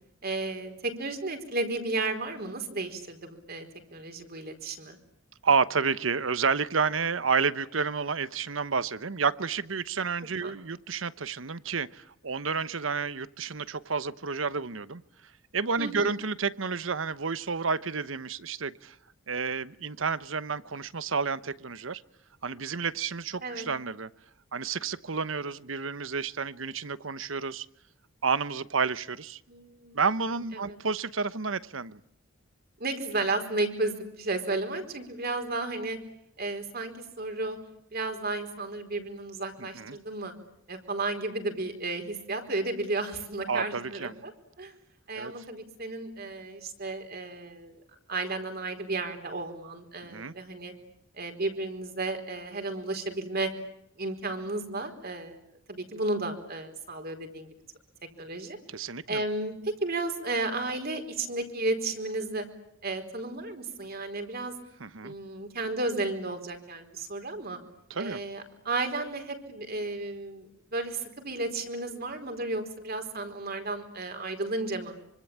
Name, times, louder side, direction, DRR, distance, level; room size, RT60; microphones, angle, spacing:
voice 1, 0.2-5.0 10.4-10.6 15.8-16.1 23.4-23.7 29.5-30.8 32.8-36.0 36.4-37.6 37.9-40.3 40.7-44.3 44.6-44.7 45.1-47.8 48.1-50.7 51.1-53.5 54.0-57.5 58.2-58.6 59.1-62.5 62.8-64.5 65.0-67.6 68.0-74.9, right 2 dB, 50° right, 4.4 m, -33 dB
voice 2, 5.4-15.0 15.5-19.0 19.3-22.0 22.4-24.1 24.5-27.7 28.2-29.4 29.9-32.0 39.7-40.0 43.5-44.1 45.1-45.3 50.0-50.3 58.7-59.2 64.8-65.1 67.9-68.2, right 5 dB, 75° right, 1.0 m, -30 dB
25.5 x 25.5 x 8.7 m
head